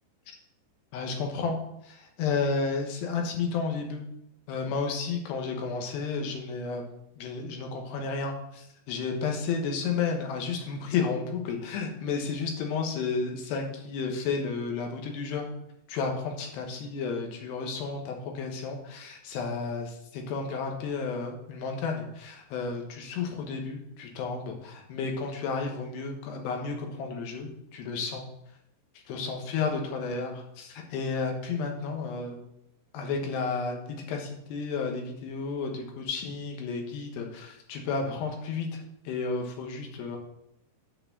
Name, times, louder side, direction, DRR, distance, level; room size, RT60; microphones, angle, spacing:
voice 1, 0.9-1.6 1.8-4.1 4.5-6.8 7.2-15.5 15.9-28.2 29.1-32.4 32.9-40.2, left 5 dB, 85° left, 2 dB, 3.3 m, -32 dB
8.5 x 4.5 x 6.7 m, 0.79 s
omnidirectional pair, 4.8 m